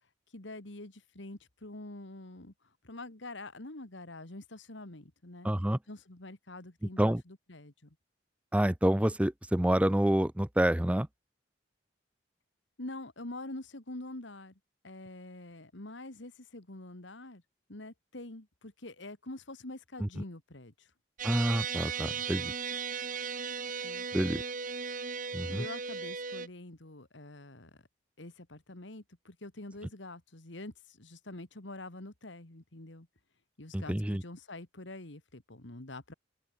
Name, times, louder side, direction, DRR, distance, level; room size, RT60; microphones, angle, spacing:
voice 1, 0.3-2.5 2.8-5.5 5.9-8.0 12.8-14.6 14.8-17.4 17.7-20.9 23.8-24.1 25.4-27.8 28.2-33.1 33.6-36.1, left 2 dB, 75° left, 2.3 m, -46 dB
voice 2, 5.4-5.8 7.0-7.2 8.5-11.1 21.2-22.5 24.1-24.4 25.3-25.7 33.7-34.2, right 1 dB, 5° right, 0.5 m, -28 dB
sound 1, 21.2-26.5, right 6 dB, 45° right, 1.9 m, -36 dB
open air
head